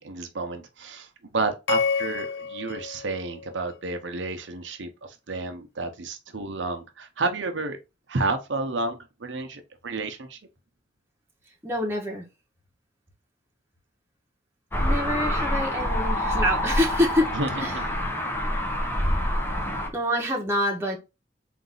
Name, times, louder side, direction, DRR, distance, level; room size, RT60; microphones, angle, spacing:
voice 1, 0.0-7.8 8.1-10.4 17.3-17.8, right 3 dB, 75° right, 0.7 m, -31 dB
sound 1, 1.7-4.0, left 5 dB, 60° left, 0.4 m, -30 dB
voice 2, 11.6-12.2 14.8-17.3 17.5-17.7 19.9-21.0, left 1 dB, 15° right, 1.0 m, -26 dB
sound 2, 14.7-19.9, equal, 10° left, 0.7 m, -26 dB
3.9 x 2.6 x 3.9 m
head